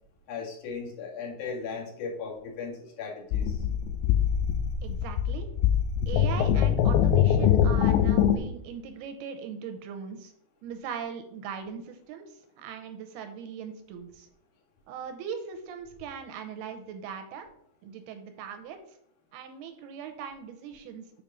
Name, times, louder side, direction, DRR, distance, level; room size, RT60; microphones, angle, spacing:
voice 1, 0.3-3.6, left 5 dB, 55° left, -2 dB, 3.1 m, -37 dB
sound 1, 3.3-8.4, left 9 dB, 80° left, 2.3 m, -23 dB
voice 2, 4.8-5.5 6.1-10.3 10.6-14.3 14.9-17.5 17.8-18.8 19.3-21.2, right 7 dB, 80° right, 7 dB, 2.5 m, -40 dB
7.2 x 5.1 x 5.5 m, 0.73 s
omnidirectional pair, 5.0 m